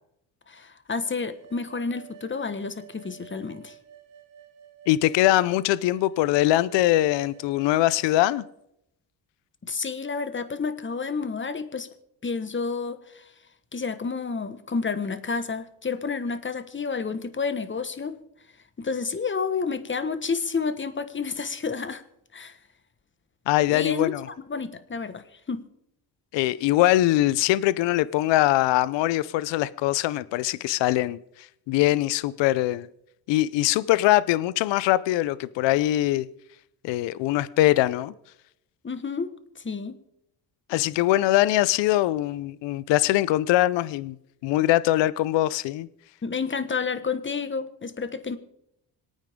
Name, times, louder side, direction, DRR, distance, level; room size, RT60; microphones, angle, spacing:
voice 1, 0.5-3.7 9.6-11.9 12.2-13.3 13.7-18.2 18.8-22.0 22.3-22.6 23.7-25.6 38.8-39.3 39.5-40.0 46.2-48.4, left 5 dB, 25° left, 1.4 m, -30 dB
sound 1, 0.9-8.5, right 9 dB, 85° right, 1.6 m, -51 dB
voice 2, 4.9-8.4 23.5-24.3 26.3-31.2 31.7-32.9 33.3-36.3 36.8-38.1 40.7-44.2 44.4-45.9, left 15 dB, 80° left, 0.6 m, -22 dB
26.5 x 9.1 x 3.7 m
supercardioid pair, 70°, 43 cm